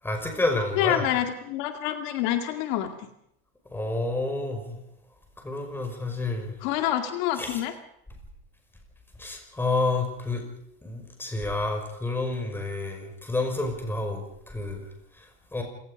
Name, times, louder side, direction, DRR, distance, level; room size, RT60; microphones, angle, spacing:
voice 1, 0.0-1.0 3.7-4.8 5.4-6.6 7.4-7.6 9.2-10.4 10.8-14.9 15.1-15.3 15.5-15.6, left 2 dB, 5° left, 4 dB, 5.7 m, -29 dB
voice 2, 0.8-3.1 6.6-7.7, left 12 dB, 65° left, 6 dB, 2.2 m, -27 dB
27.5 x 19.0 x 5.3 m, 0.75 s
supercardioid pair, 145°, 29 cm